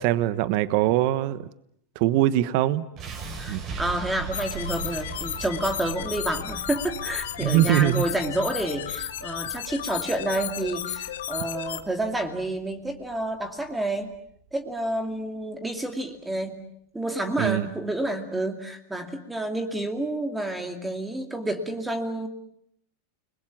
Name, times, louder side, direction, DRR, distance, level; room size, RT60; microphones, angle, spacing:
voice 1, 0.0-1.5 1.9-2.8 3.5-3.6 7.4-8.0 17.4-17.7, right 14 dB, 55° right, 14 dB, 1.1 m, -22 dB
sound 1, 3.0-15.0, right 3 dB, 40° right, 6.6 m, -40 dB
voice 2, 3.4-14.1 14.5-16.6 16.9-22.3, right 1 dB, 10° right, 5 dB, 2.5 m, -29 dB
sound 2, 4.3-11.8, left 11 dB, 85° left, 1.7 m, -34 dB
30.0 x 21.5 x 7.4 m, 0.71 s
supercardioid pair, 130°, 0 cm